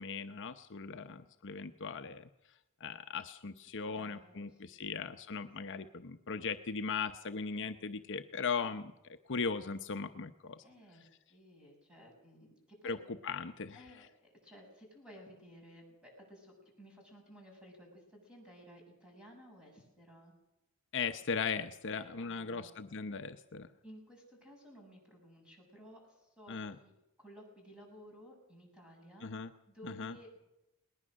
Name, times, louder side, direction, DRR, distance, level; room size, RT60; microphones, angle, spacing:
voice 1, 0.0-2.2 2.8-10.6 12.8-13.0 13.2-13.8 20.9-23.7 26.5-26.8 29.2-29.5 29.8-30.2, left 5 dB, 55° left, 8 dB, 0.8 m, -38 dB
voice 2, 3.9-5.0 5.7-5.8 10.6-13.0 13.7-14.1 14.4-20.3 21.9-22.7 23.8-26.9 27.2-30.4, equal, 5° right, 0 dB, 7.5 m, -56 dB
21.0 x 19.5 x 6.4 m, 0.92 s
head